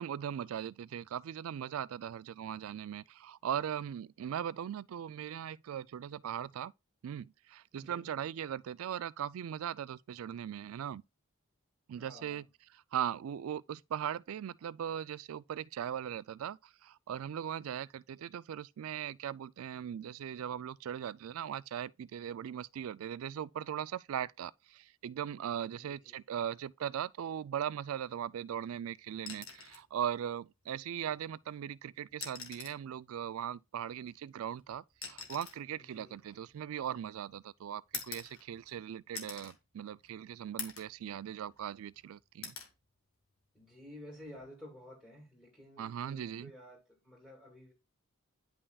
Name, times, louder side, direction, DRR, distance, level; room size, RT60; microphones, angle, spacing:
voice 1, 0.0-6.7 7.0-11.0 11.9-12.5 12.9-42.5 45.8-46.5, right 9 dB, 80° right, 0.3 m, -39 dB
voice 2, 7.7-8.1 12.0-12.4 25.6-26.2 35.9-36.2 43.5-47.7, left 1 dB, 5° left, 2.2 m, -52 dB
sound 1, 29.2-29.9 31.3-31.4 32.1-32.9 34.0-37.1 37.9-38.8 39.1-39.6 40.0-40.1 40.6-41.0 41.4-42.0 42.4-42.7 44.2-44.4, left 6 dB, 75° left, 1.5 m, -45 dB
9.8 x 5.5 x 2.3 m
head